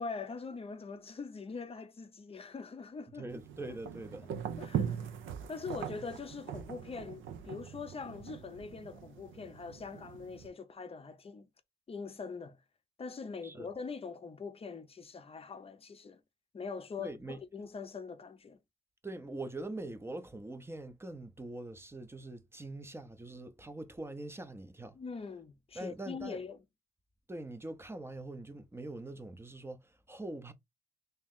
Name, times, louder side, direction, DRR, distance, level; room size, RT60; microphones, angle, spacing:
voice 1, 0.0-3.3 4.6-4.9 5.5-11.5 11.9-12.6 13.0-16.2 16.5-18.6 24.9-26.6, left 5 dB, 30° left, 0.6 m, -43 dB
voice 2, 3.2-4.3 13.4-13.7 17.0-17.4 19.0-25.0 25.7-26.4 27.3-30.5, right 2 dB, 10° right, 0.7 m, -43 dB
sound 1, 3.3-10.5, right 8 dB, 75° right, 0.7 m, -41 dB
2.9 x 2.8 x 3.6 m
cardioid pair, 90°, 20 cm